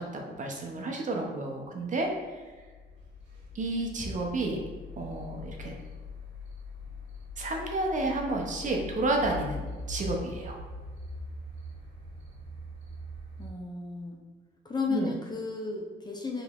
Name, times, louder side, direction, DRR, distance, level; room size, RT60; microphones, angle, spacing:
voice 1, 0.0-2.4 3.5-4.6 5.0-5.7 7.4-10.6 14.9-15.1, right 2 dB, 40° right, 1 dB, 0.6 m, -31 dB
sound 1, 2.2-13.5, left 2 dB, 65° right, 1.0 m, -42 dB
voice 2, 13.4-14.2 14.6-16.4, left 4 dB, 20° left, 0 dB, 0.5 m, -33 dB
3.7 x 2.9 x 2.4 m, 1.4 s
cardioid pair, 90°, 20 cm